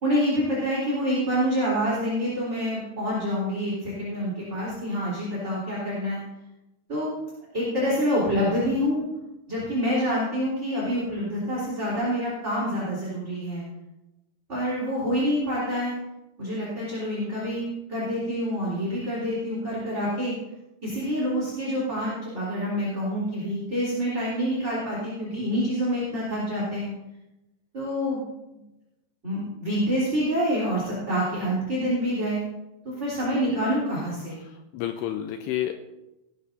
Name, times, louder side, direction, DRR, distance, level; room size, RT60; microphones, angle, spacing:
voice 1, 0.0-6.2 6.9-7.1 7.5-9.0 9.5-13.6 14.5-15.9 16.4-20.3 20.8-26.9 27.7-28.2 28.5-28.6 29.2-32.4 32.8-34.4, equal, 15° right, -7 dB, 3.4 m, -27 dB
voice 2, 33.2-33.6 34.4-35.8, left 12 dB, 90° left, 6 dB, 2.4 m, -31 dB
18.5 x 11.5 x 2.7 m, 0.95 s
omnidirectional pair, 5.3 m